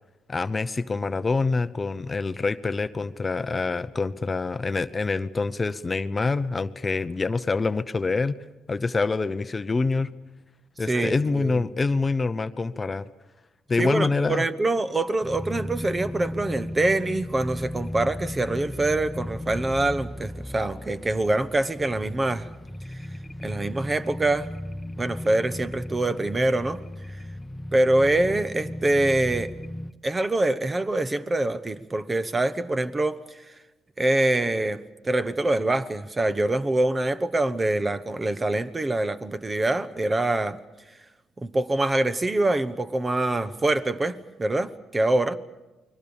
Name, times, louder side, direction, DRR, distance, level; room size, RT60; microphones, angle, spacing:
voice 1, 0.3-8.4 8.7-10.1 10.8-13.1 13.7-14.4, left 3 dB, 30° left, 0.8 m, -26 dB
voice 2, 10.9-11.7 13.8-22.5 23.4-24.5 25.0-26.8 27.7-29.5 30.0-33.4 34.0-40.6 41.4-45.4, right 2 dB, 25° right, 1.1 m, -25 dB
sound 1, 15.2-29.9, left 1 dB, 10° left, 1.1 m, -36 dB
29.0 x 21.5 x 7.2 m
cardioid pair, 90°, 0 cm